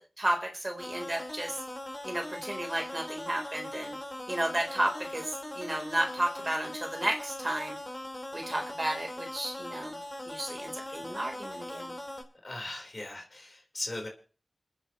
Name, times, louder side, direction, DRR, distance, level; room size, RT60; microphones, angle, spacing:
voice 1, 0.0-1.6 2.0-4.0 4.3-7.8 8.3-10.0 10.3-11.9, right 1 dB, 30° right, 2 dB, 3.9 m, -33 dB
sound 1, 0.8-12.2, left 1 dB, 20° left, 4.5 m, -40 dB
voice 2, 12.4-14.1, left 2 dB, 45° left, 1 dB, 4.4 m, -38 dB
29.5 x 9.9 x 3.2 m, 0.39 s
wide cardioid pair, 70°, 0 cm